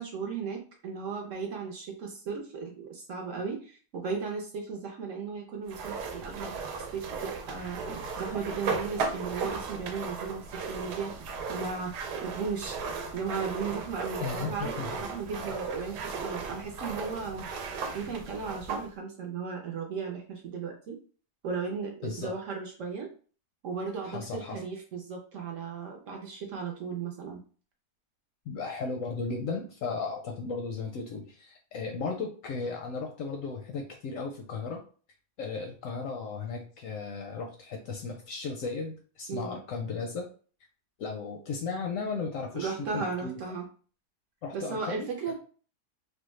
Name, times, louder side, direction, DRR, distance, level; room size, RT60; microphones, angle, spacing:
voice 1, 0.0-7.8 8.2-11.1 11.5-17.5 17.9-21.0 21.4-23.1 23.6-27.4 39.3-39.6 42.5-43.6 44.5-45.3, right 5 dB, 65° right, 1 dB, 0.8 m, -36 dB
sound 1, 5.7-18.9, right 5 dB, 80° right, 1.1 m, -36 dB
voice 2, 14.2-15.0 22.0-22.3 24.0-24.6 28.5-34.8 35.4-40.3 41.0-43.4 44.4-45.3, left 4 dB, 70° left, 2 dB, 0.8 m, -35 dB
3.4 x 2.1 x 3.1 m, 0.40 s
omnidirectional pair, 1.7 m